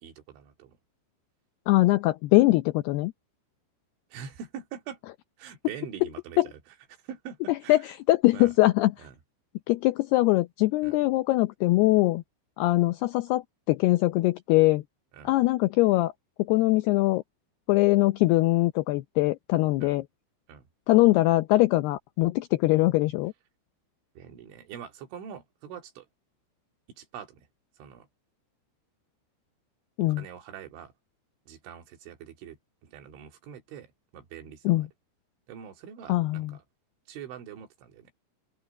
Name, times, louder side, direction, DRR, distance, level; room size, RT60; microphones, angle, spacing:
voice 1, 0.0-0.8 4.1-5.0 5.4-7.9 8.3-8.5 9.0-9.2 10.8-11.0 15.1-15.4 19.8-20.0 20.5-20.6 24.2-26.1 26.9-27.5 27.7-28.1 30.1-30.9 31.5-34.9 35.5-36.6 37.1-38.1, right 8 dB, 80° right, 4.8 m, -44 dB
voice 2, 1.7-3.1 7.7-7.8 8.1-8.9 9.7-12.2 12.6-14.8 15.3-16.1 16.5-17.2 17.7-20.0 20.9-23.3 30.0-30.2 34.7-34.9 36.1-36.5, left 19 dB, 85° left, 2.3 m, -22 dB
open air
omnidirectional pair, 5.4 m